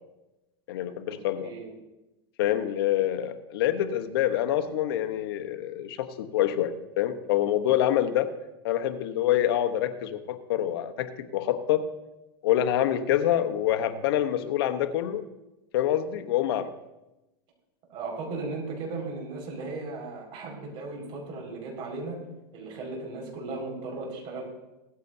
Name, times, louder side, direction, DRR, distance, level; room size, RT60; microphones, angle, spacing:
voice 1, 0.7-1.5 2.4-8.3 8.6-11.8 12.4-15.2 15.7-16.7, left 11 dB, 75° left, 9 dB, 1.0 m, -26 dB
voice 2, 1.4-1.7 17.9-22.2 22.5-24.4, right 3 dB, 45° right, 0 dB, 5.0 m, -36 dB
17.0 x 14.0 x 2.7 m, 0.99 s
supercardioid pair, 135°, 13 cm